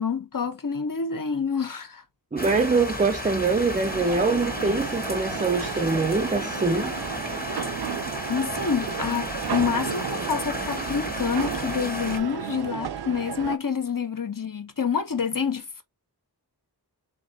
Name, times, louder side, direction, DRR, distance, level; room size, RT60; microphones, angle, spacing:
voice 1, 0.0-2.0 8.3-15.8, left 6 dB, 55° left, 1.0 m, -27 dB
voice 2, 2.3-6.9, right 4 dB, 20° right, 0.5 m, -24 dB
sound 1, 2.4-12.2, left 1 dB, 20° left, 1.2 m, -33 dB
sound 2, 3.9-13.6, right 8 dB, 70° right, 0.5 m, -33 dB
3.7 x 2.9 x 3.9 m
wide cardioid pair, 50°, 40 cm